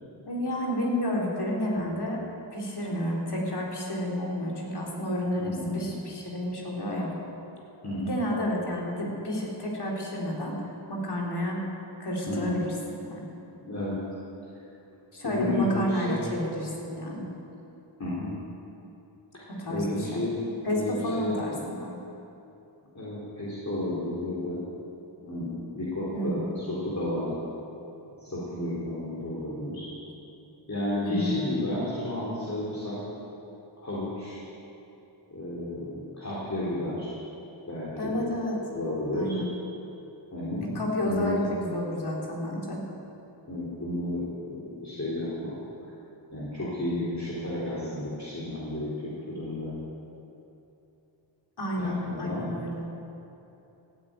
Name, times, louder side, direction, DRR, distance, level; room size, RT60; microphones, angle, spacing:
voice 1, 0.3-2.2 2.5-7.1 8.0-10.6 10.9-11.6 12.0-12.7 13.0-13.3 15.1-17.3 19.5-19.8 20.1-20.2 20.7-22.0 26.1-26.4 31.0-31.3 38.0-38.6 39.1-39.4 40.8-42.8 51.6-52.8, equal, 55° left, -3 dB, 3.6 m, -30 dB
voice 2, 5.4-5.8 7.8-8.2 12.3-12.6 13.6-14.0 15.2-16.2 18.0-18.3 19.7-20.3 20.6-21.4 22.9-24.6 25.2-27.3 28.2-29.9 30.7-33.0 33.8-34.4 35.3-37.1 37.7-38.1 38.7-39.4 40.3-40.7 41.1-41.5 43.5-45.5 46.3-49.7 51.8-52.5, left 1 dB, 35° left, -9 dB, 3.7 m, -32 dB
16.0 x 8.9 x 9.0 m, 2.9 s
wide cardioid pair, 90°, 47 cm